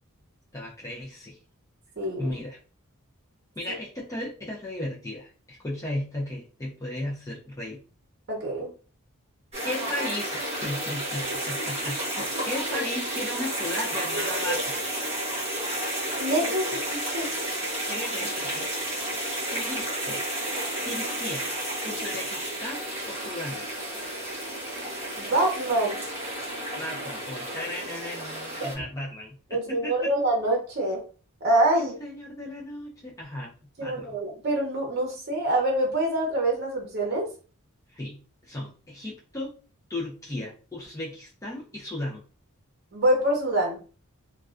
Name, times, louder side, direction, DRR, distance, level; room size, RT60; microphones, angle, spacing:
voice 1, 0.5-1.4 2.2-2.6 3.6-7.8 9.6-14.9 16.4-16.5 17.9-18.7 19.5-20.2 20.9-21.5 21.8-23.6 26.8-30.1 31.8-33.5 33.8-34.2 37.9-39.5 39.9-42.2, left 1 dB, 15° left, -5 dB, 0.5 m, -35 dB
voice 2, 2.0-2.3 8.3-8.7 16.2-17.3 25.2-26.0 28.6-28.7 29.5-31.0 31.4-31.9 33.8-37.3 42.9-43.8, right 1 dB, 50° right, -1 dB, 0.7 m, -25 dB
sound 1, 9.5-28.8, right 1 dB, 30° right, 1.1 m, -31 dB
2.3 x 2.3 x 2.4 m, 0.37 s
head